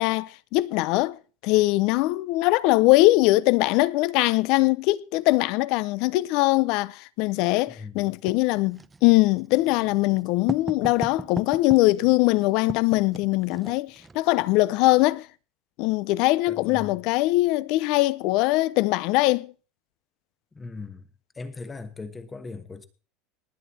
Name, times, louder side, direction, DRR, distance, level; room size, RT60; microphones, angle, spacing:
voice 1, 0.0-15.3 15.8-19.5, left 20 dB, 50° left, 0.6 m, -22 dB
voice 2, 7.7-8.2 16.5-17.0 20.5-21.1 21.3-22.8, left 4 dB, 10° left, 1.1 m, -39 dB
Writing, 8.3-14.2, right 3 dB, 10° right, 0.6 m, -38 dB
19.0 x 8.8 x 4.2 m
supercardioid pair, 170°, 0 cm